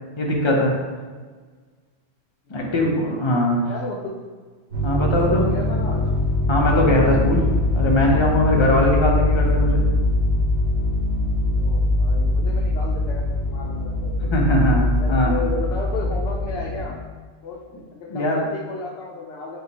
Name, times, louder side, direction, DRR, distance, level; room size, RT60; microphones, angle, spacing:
voice 1, 0.2-0.7 2.5-3.6 4.8-5.4 6.5-7.4 7.7-9.8 14.3-15.3 18.1-18.4, left 1 dB, 35° left, -1 dB, 0.5 m, -20 dB
voice 2, 2.5-2.9 3.6-4.2 5.1-6.1 9.3-9.4 11.5-14.3 15.0-17.0 17.4-19.6, left 3 dB, 70° left, -2 dB, 0.8 m, -33 dB
sound 1, 4.7-16.8, left 2 dB, 60° right, 1.9 m, -22 dB
4.5 x 2.3 x 3.9 m, 1.4 s
omnidirectional pair, 1.2 m